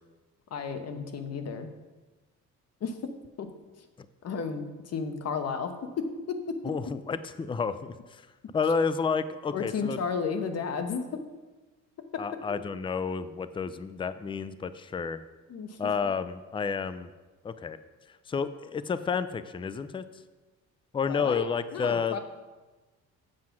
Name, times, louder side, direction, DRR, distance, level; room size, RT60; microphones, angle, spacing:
voice 1, 0.5-1.7 2.8-3.0 3.4-3.5 4.2-5.7 6.3-6.4 9.5-11.0 15.5-15.8 21.1-22.2, left 5 dB, 50° left, 8 dB, 1.1 m, -33 dB
voice 2, 6.6-8.2 8.5-10.0 12.2-15.2 15.8-17.1 17.4-17.8 18.3-20.0 20.9-22.2, left 5 dB, 15° left, 13 dB, 0.4 m, -30 dB
7.7 x 7.5 x 5.8 m, 1.2 s
cardioid pair, 110°, 31 cm